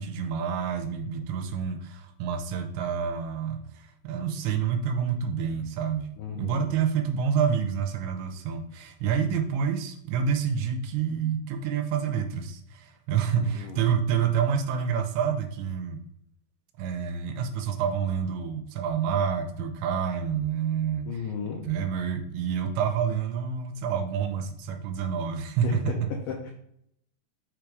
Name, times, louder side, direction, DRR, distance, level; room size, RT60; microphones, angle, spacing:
voice 1, 0.0-16.0 16.8-21.3 21.5-25.9, right 7 dB, 85° right, 7 dB, 2.9 m, -28 dB
voice 2, 6.2-6.7 13.3-13.9 21.1-21.7 25.6-26.5, left 6 dB, 85° left, 1 dB, 1.8 m, -35 dB
6.5 x 4.7 x 5.1 m, 0.74 s
omnidirectional pair, 5.1 m